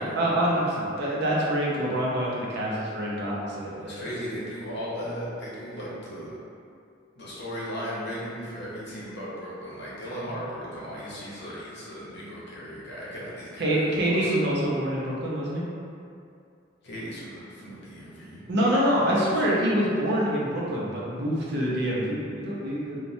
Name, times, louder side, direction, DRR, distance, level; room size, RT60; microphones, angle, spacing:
voice 1, 0.0-4.0 13.6-15.6 18.5-23.0, equal, 60° right, -5 dB, 0.6 m, -26 dB
voice 2, 3.9-6.4 7.2-14.3 16.8-18.4 19.2-19.5, equal, 60° left, -7 dB, 0.7 m, -36 dB
3.1 x 2.1 x 2.6 m, 2.4 s
head